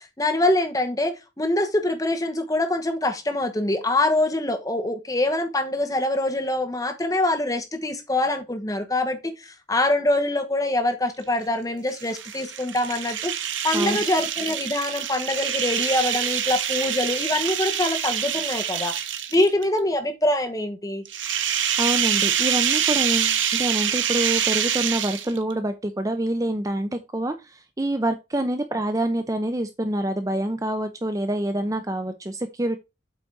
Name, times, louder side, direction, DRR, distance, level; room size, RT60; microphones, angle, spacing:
voice 1, 0.0-13.3 13.6-19.0 19.3-21.0, left 1 dB, 20° left, 1.1 m, -24 dB
sound 1, 11.9-19.6 21.1-25.5, right 9 dB, 85° right, 1.0 m, -25 dB
voice 2, 21.8-32.8, right 1 dB, 20° right, 0.5 m, -26 dB
8.0 x 4.0 x 4.6 m
head